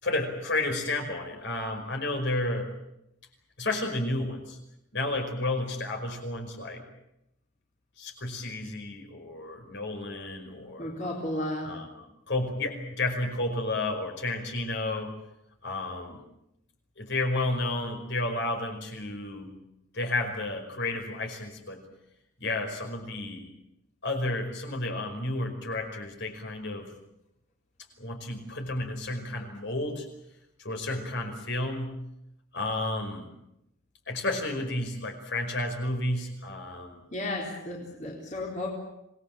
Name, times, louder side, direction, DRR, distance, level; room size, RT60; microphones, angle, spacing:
voice 1, 0.0-2.7 3.6-4.6 4.9-6.8 8.0-10.9 11.6-15.1 15.6-16.2 17.0-19.6 19.9-21.8 22.4-23.5 24.0-26.9 28.0-30.1 30.6-32.0 32.5-33.3 34.1-37.0, left 2 dB, 55° left, 4 dB, 5.2 m, -31 dB
voice 2, 10.8-11.7 37.1-38.7, left 1 dB, 35° left, -2 dB, 4.1 m, -33 dB
26.5 x 19.5 x 9.0 m, 0.84 s
head